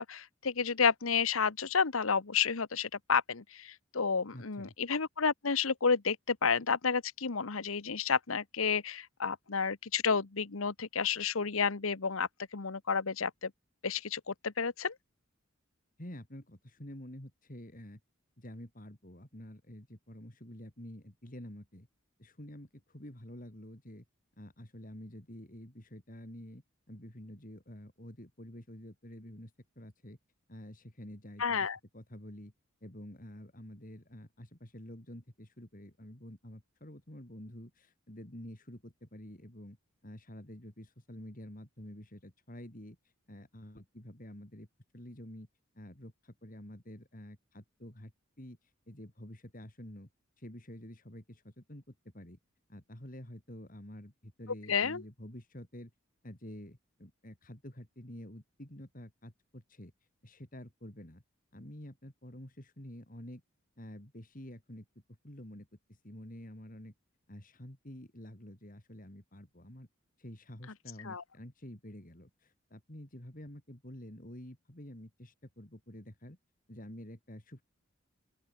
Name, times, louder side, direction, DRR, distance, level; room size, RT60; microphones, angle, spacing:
voice 1, 0.0-13.5 13.8-14.9 31.4-31.8 54.7-55.0 71.0-71.2, left 5 dB, 85° left, 1.1 m, -31 dB
voice 2, 4.3-4.7 16.0-18.0 18.4-21.9 22.2-24.0 24.4-30.2 30.5-32.5 32.8-39.8 40.0-44.7 44.9-45.5 45.7-48.1 48.4-50.1 50.4-52.4 52.7-55.9 56.2-59.9 60.2-61.2 61.5-63.4 63.8-64.9 65.2-66.9 67.3-69.9 70.2-76.4 76.7-77.6, left 1 dB, 40° left, 3.3 m, -49 dB
open air
head